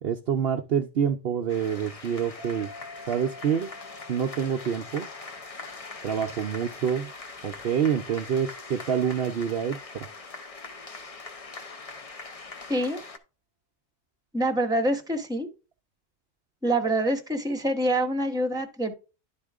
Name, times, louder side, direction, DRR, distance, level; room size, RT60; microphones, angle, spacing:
voice 1, 0.0-2.7 3.1-3.7 4.1-5.1 6.0-7.1 7.4-10.1, right 8 dB, 60° right, 4 dB, 0.8 m, -27 dB
sound 1, 1.5-13.2, left 3 dB, 35° left, 0.7 m, -42 dB
sound 2, 2.4-9.4, left 2 dB, 15° left, 2.2 m, -50 dB
voice 2, 12.7-13.0 14.3-15.5 16.6-18.9, right 1 dB, 5° right, 4 dB, 1.1 m, -26 dB
11.0 x 4.3 x 3.5 m, 0.31 s
omnidirectional pair, 1.3 m